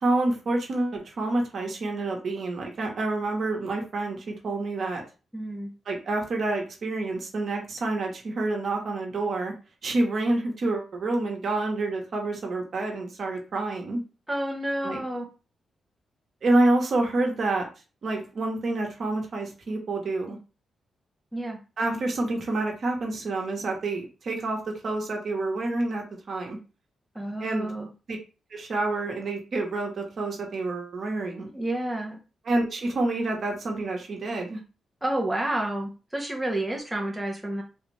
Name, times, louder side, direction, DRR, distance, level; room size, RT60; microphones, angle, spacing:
voice 1, 0.0-5.0 5.9-9.5 9.8-14.0 14.8-15.0 16.4-17.7 18.0-20.4 21.8-26.6 27.4-27.7 28.1-28.2 28.5-31.5 32.4-34.6, right 2 dB, 60° right, 1 dB, 1.1 m, -28 dB
voice 2, 5.3-5.7 14.3-15.3 21.3-21.6 27.1-27.9 31.5-32.2 35.0-37.6, right 1 dB, 5° right, 0 dB, 0.8 m, -30 dB
3.5 x 2.4 x 3.2 m, 0.33 s
cardioid pair, 90°, 0 cm